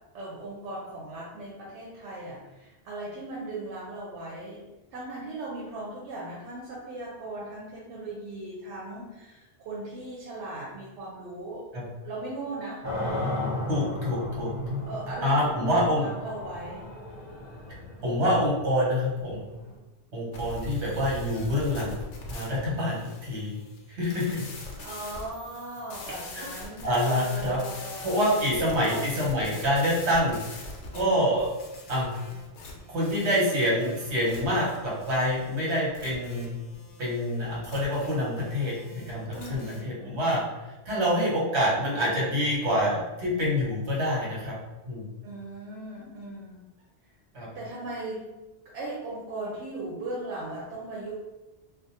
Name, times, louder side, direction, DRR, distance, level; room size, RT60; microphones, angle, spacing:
voice 1, 0.1-4.6 4.9-11.7 12.0-12.8 14.9-16.9 24.8-28.2 28.4-29.2 39.4-40.5 45.2-46.6 47.5-48.4 48.6-51.1, right 2 dB, 85° right, -5 dB, 0.9 m, -38 dB
sound 1, 12.8-19.7, left 1 dB, 35° right, 0.4 m, -35 dB
voice 2, 13.7-14.8 15.2-16.0 18.0-19.4 20.1-22.0 22.3-23.5 23.9-24.4 26.4-26.5 26.8-27.6 28.0-30.4 30.9-31.5 31.9-32.1 32.9-36.6 37.0-40.4 40.8-44.5 44.8-45.1 47.3-47.5, equal, 70° right, -5 dB, 1.2 m, -26 dB
sound 2, 20.3-39.8, left 2 dB, 85° left, 0.9 m, -43 dB
2.5 x 2.2 x 2.7 m, 1.0 s
omnidirectional pair, 1.2 m